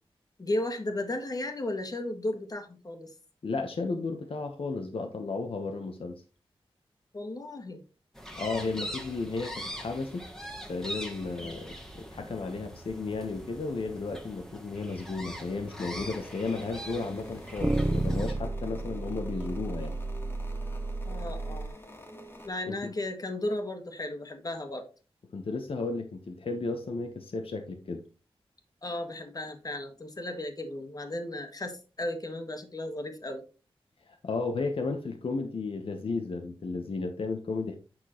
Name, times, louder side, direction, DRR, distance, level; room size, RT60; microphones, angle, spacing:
voice 1, 0.4-3.1 7.1-7.8 11.4-11.6 21.0-21.7 22.4-24.9 28.8-33.4, left 1 dB, 40° left, 1.6 m, -35 dB
voice 2, 3.4-6.2 8.3-10.3 10.7-19.9 22.6-22.9 25.3-28.0 34.1-37.8, left 3 dB, 65° left, 1.0 m, -34 dB
sound 1, 8.1-18.3, equal, 5° left, 1.5 m, -42 dB
sound 2, 15.8-22.5, equal, 20° left, 1.8 m, -47 dB
sound 3, 16.0-16.1 17.6-21.7, right 2 dB, 10° right, 0.7 m, -32 dB
8.9 x 6.0 x 3.0 m
wide cardioid pair, 95°, 10 cm